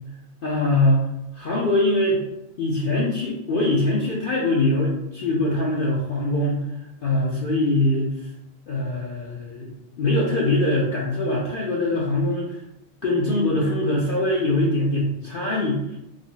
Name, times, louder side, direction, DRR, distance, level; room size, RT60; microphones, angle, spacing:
voice 1, 0.4-1.1 1.3-2.2 2.6-6.6 7.0-8.3 8.7-9.7 10.0-12.5 13.0-16.0, left 1 dB, 60° left, -4 dB, 0.6 m, -22 dB
3.4 x 2.0 x 3.7 m, 0.85 s
omnidirectional pair, 1.4 m